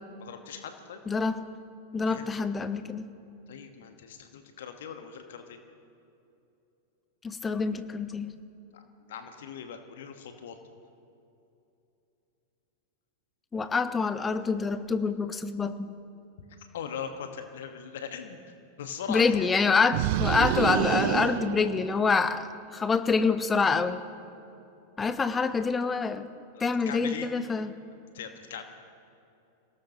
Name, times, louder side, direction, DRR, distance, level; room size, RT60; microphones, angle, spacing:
voice 1, 0.2-1.0 2.1-2.3 3.5-5.6 8.7-10.6 16.6-19.5 20.5-20.6 26.5-27.3 28.1-28.6, left 7 dB, 60° left, 6 dB, 1.4 m, -40 dB
voice 2, 1.1-1.4 1.9-3.0 7.2-8.3 13.5-15.9 19.1-24.0 25.0-26.3 26.6-27.7, left 4 dB, 15° left, 11 dB, 0.9 m, -26 dB
sound 1, 19.9-22.4, right 16 dB, 50° right, 0.3 m, -28 dB
26.5 x 18.0 x 3.0 m, 2.7 s
figure-of-eight pair, 90°, 0 cm